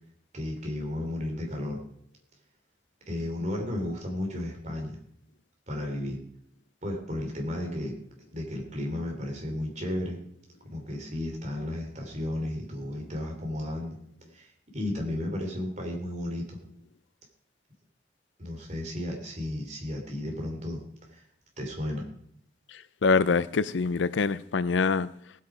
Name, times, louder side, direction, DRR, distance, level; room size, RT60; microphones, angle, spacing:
voice 1, 0.3-1.8 3.1-5.0 5.7-6.2 6.8-8.0 8.3-10.2 10.6-14.0 14.3-16.6 18.4-20.8 21.1-21.2 21.6-22.0, left 1 dB, 40° right, 3.2 m, -33 dB
voice 2, 23.0-25.1, left 4 dB, 90° left, 0.5 m, -24 dB
18.0 x 8.3 x 4.9 m
head